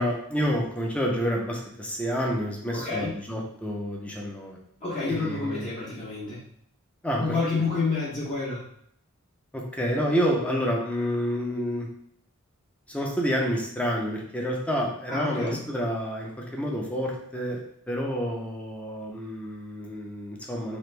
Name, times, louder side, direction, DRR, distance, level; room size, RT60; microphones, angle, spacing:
voice 1, 0.0-4.6 5.1-5.7 7.0-7.3 9.5-11.9 12.9-20.8, equal, 5° left, -1 dB, 0.5 m, -29 dB
voice 2, 2.7-3.1 4.8-6.4 7.2-8.6 15.1-15.6, left 3 dB, 35° left, -9 dB, 0.8 m, -29 dB
3.0 x 2.4 x 3.2 m, 0.69 s
head